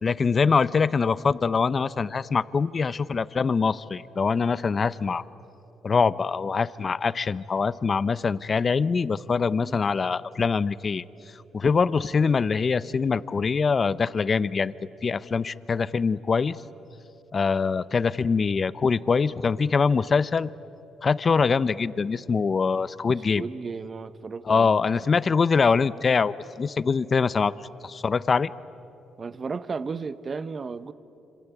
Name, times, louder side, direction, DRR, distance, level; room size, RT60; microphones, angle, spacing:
voice 1, 0.0-5.2 5.8-11.0 11.5-14.7 15.0-16.6 17.3-20.5 21.0-23.4 24.5-27.5 27.8-28.5, left 5 dB, 40° left, 0.6 m, -23 dB
voice 2, 23.3-24.8 29.2-30.9, right 4 dB, 35° right, 1.0 m, -34 dB
26.5 x 26.5 x 8.3 m
cardioid pair, 90°, 0 cm